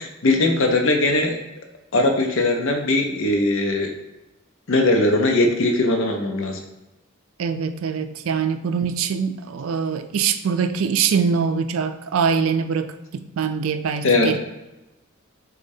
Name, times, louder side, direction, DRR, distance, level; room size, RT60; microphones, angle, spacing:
voice 1, 0.0-1.4 1.9-3.9 4.7-6.6 14.0-14.4, left 2 dB, 65° left, 3 dB, 0.7 m, -20 dB
voice 2, 7.4-14.4, right 6 dB, 75° right, 9 dB, 0.4 m, -23 dB
6.2 x 2.4 x 2.7 m, 0.99 s
head